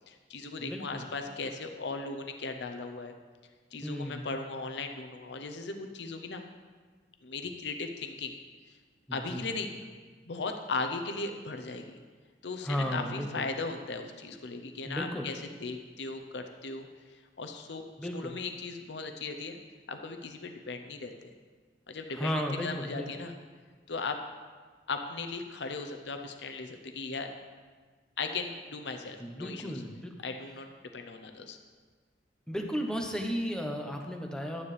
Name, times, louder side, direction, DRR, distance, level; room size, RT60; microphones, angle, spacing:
voice 1, 0.1-3.1 3.7-6.4 7.2-8.3 8.7-8.8 9.1-9.7 10.3-12.0 12.4-17.8 18.1-19.6 19.9-21.3 21.9-22.3 22.6-23.3 23.9-24.2 24.9-27.3 28.2-29.7 30.2-31.6, left 3 dB, 70° left, 5 dB, 0.7 m, -37 dB
voice 2, 0.6-1.1 3.8-4.2 9.1-9.5 12.6-13.5 14.9-15.3 18.0-18.3 22.1-23.1 29.2-30.1 32.5-34.6, equal, 5° left, 2 dB, 0.9 m, -34 dB
11.0 x 9.7 x 3.3 m, 1.5 s
head